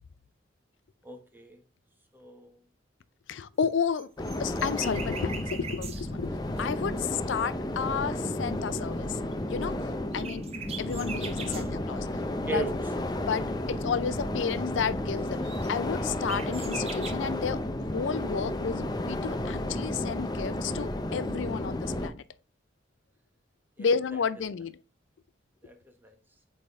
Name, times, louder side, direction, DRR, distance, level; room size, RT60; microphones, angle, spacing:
voice 1, 1.0-1.6 2.1-2.6 11.4-11.7 12.4-12.7 23.8-23.9 25.6-26.1, right 2 dB, 10° right, 1.0 m, -37 dB
voice 2, 3.3-4.1 4.4-6.3 6.6-9.2 9.5-9.8 10.1-10.4 10.8-12.1 12.4-12.6 13.2-15.4 15.7-22.2 23.8-24.8, left 6 dB, 85° left, 0.4 m, -32 dB
sound 1, 3.7-7.5 9.3-9.4 9.7-9.8 10.1-11.7 12.3-14.1 14.3-14.6 14.8-14.9 15.2-17.1, right 5 dB, 35° right, 0.8 m, -42 dB
sound 2, 4.2-22.1, left 1 dB, 20° left, 0.5 m, -32 dB
8.2 x 3.5 x 3.5 m
head